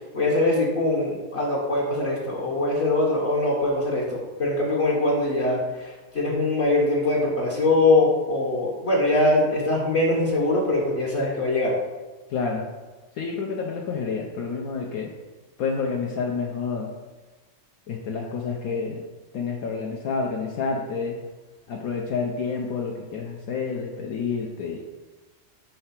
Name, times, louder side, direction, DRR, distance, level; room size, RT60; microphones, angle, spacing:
voice 1, 0.1-11.8, left 2 dB, 50° left, -4 dB, 1.2 m, -22 dB
voice 2, 12.3-12.7 13.1-15.1 15.6-16.9 17.9-19.0 19.3-21.2 21.7-24.8, left 5 dB, 70° left, 0 dB, 1.1 m, -29 dB
5.7 x 3.3 x 5.7 m, 1.2 s
omnidirectional pair, 1.6 m